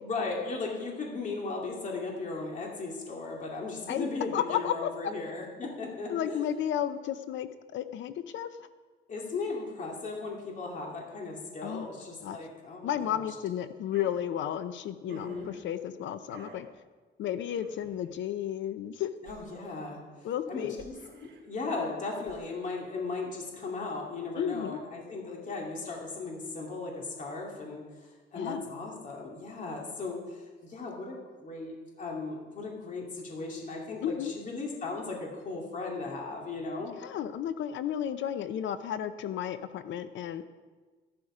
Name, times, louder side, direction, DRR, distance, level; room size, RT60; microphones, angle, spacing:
voice 1, 0.0-6.4 9.1-13.3 15.1-15.5 19.2-20.0 20.5-36.9, left 3 dB, 40° left, -1 dB, 2.5 m, -37 dB
voice 2, 3.9-4.9 6.1-8.5 11.6-11.9 12.2-12.4 12.8-16.7 17.2-19.1 20.2-20.8 24.4-24.8 28.3-28.6 34.0-34.3 37.0-40.4, left 10 dB, 80° left, 11 dB, 0.7 m, -33 dB
sound 1, 13.9-14.3 15.1-15.7 16.3-16.7 17.4-18.1 19.2-19.9 20.8-21.4 22.2-22.7, right 2 dB, 75° right, 3.3 m, -52 dB
14.0 x 11.5 x 5.0 m, 1.3 s
cardioid pair, 155°, 19 cm